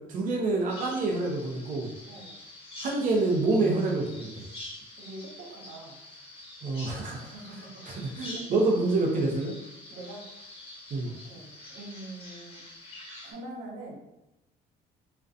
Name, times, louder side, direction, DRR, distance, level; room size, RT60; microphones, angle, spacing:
voice 1, 0.1-1.9 2.8-4.4 6.6-7.1 7.9-9.6 10.9-11.1, right 2 dB, 50° right, -1 dB, 0.5 m, -27 dB
Bird vocalization bird call bird song, 0.7-13.3, left 1 dB, 35° left, 1.0 m, -46 dB
voice 2, 2.1-2.4 5.0-6.0 7.1-7.9 8.3-8.4 9.9-10.3 11.1-12.7 13.2-14.0, right 2 dB, 90° right, -2 dB, 0.7 m, -44 dB
2.4 x 2.2 x 2.4 m, 0.95 s
cardioid pair, 110°, 17 cm